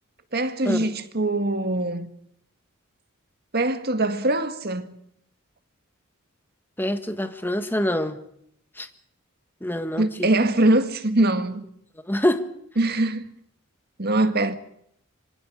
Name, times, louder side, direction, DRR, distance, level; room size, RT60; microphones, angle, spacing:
voice 1, 0.3-2.1 3.5-4.9 10.0-11.6 12.8-13.2 14.0-14.5, right 2 dB, 50° right, 1.9 m, -22 dB
voice 2, 6.8-8.2 8.8-8.9 9.6-10.3 12.0-12.4, left 1 dB, 10° left, 1.7 m, -25 dB
26.5 x 25.0 x 5.0 m
head